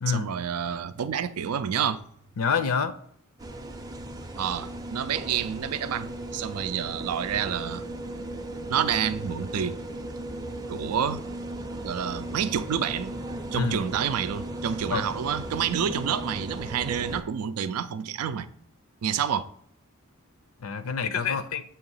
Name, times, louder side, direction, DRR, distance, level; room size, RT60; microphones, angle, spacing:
voice 1, 0.1-2.0 4.4-7.8 8.7-9.8 10.7-11.2 11.8-13.1 13.5-18.5 19.0-19.5, right 8 dB, 85° right, 0.4 m, -28 dB
voice 2, 2.4-2.9 13.5-13.8 14.9-15.1 20.6-21.6, left 6 dB, 70° left, 0.5 m, -27 dB
sound 1, 3.4-17.2, right 1 dB, 15° right, 0.5 m, -37 dB
7.1 x 2.9 x 5.4 m
head